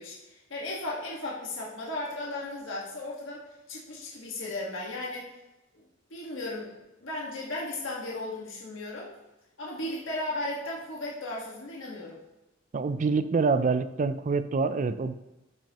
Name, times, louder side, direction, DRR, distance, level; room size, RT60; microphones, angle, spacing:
voice 1, 0.0-5.3 5.7-5.8 6.1-6.7 7.0-9.1 9.6-12.2, left 2 dB, 75° left, -4 dB, 1.5 m, -36 dB
voice 2, 12.7-15.1, right 4 dB, 40° right, 12 dB, 0.4 m, -26 dB
12.0 x 6.0 x 2.9 m, 0.97 s
head